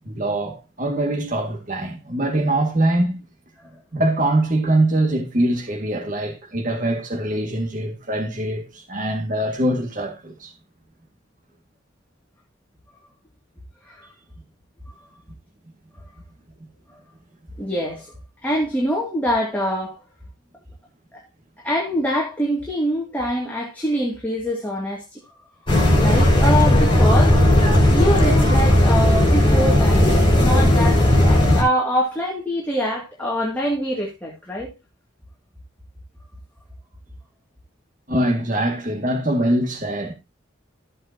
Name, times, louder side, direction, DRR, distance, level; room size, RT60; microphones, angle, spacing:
voice 1, 0.0-3.2 3.9-10.5 38.1-40.1, right 1 dB, 40° right, 2.0 m, -23 dB
voice 2, 17.6-18.1 18.4-20.0 21.1-21.2 21.6-25.2 25.9-27.4 27.9-34.7, equal, 10° left, 2.3 m, -24 dB
sound 1, 25.7-31.6, left 1 dB, 25° left, 5.3 m, -15 dB
14.5 x 7.7 x 2.8 m
head